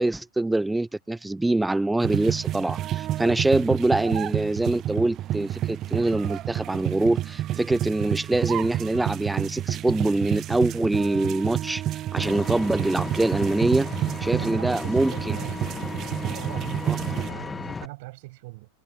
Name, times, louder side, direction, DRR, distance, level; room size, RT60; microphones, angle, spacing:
voice 1, 0.0-11.8 12.1-13.9 14.2-15.4 16.8-17.0, right 2 dB, 5° right, 0.9 m, -24 dB
sound 1, 2.0-17.3, right 13 dB, 30° right, 0.3 m, -29 dB
Vehicle, 12.2-17.9, left 4 dB, 15° left, 1.2 m, -35 dB
voice 2, 14.3-15.6 16.0-18.7, right 23 dB, 50° right, 8.0 m, -40 dB
figure-of-eight pair, 90°, 0 cm